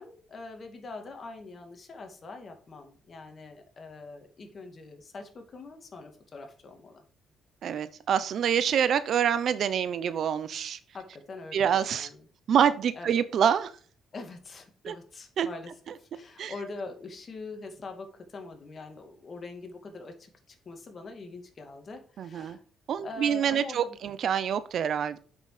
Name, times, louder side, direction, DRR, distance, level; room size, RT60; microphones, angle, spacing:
voice 1, 0.0-7.0 10.9-12.2 12.9-13.1 14.1-15.7 16.0-22.6 23.0-24.0, left 3 dB, 40° left, 5 dB, 2.3 m, -43 dB
voice 2, 7.6-10.8 11.5-12.1 12.5-13.7 14.8-14.9 15.4-15.5 16.4-16.5 22.2-22.6 22.9-25.2, right 8 dB, 65° right, 14 dB, 0.7 m, -26 dB
7.7 x 6.1 x 5.0 m, 0.43 s
cardioid pair, 90°, 0 cm